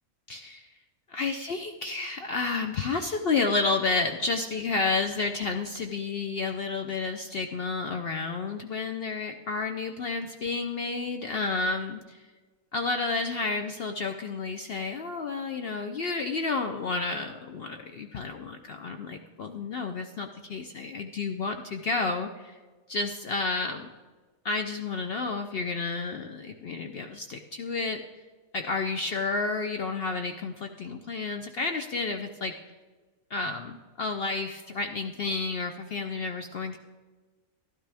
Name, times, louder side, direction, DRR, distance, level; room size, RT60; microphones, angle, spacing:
voice 1, 0.3-0.7 1.1-12.2 12.7-22.6 22.9-23.9 24.4-28.0 28.5-32.5 33.3-36.8, left 3 dB, 65° left, 6 dB, 0.6 m, -31 dB
12.0 x 12.0 x 3.4 m, 1.3 s
omnidirectional pair, 1.5 m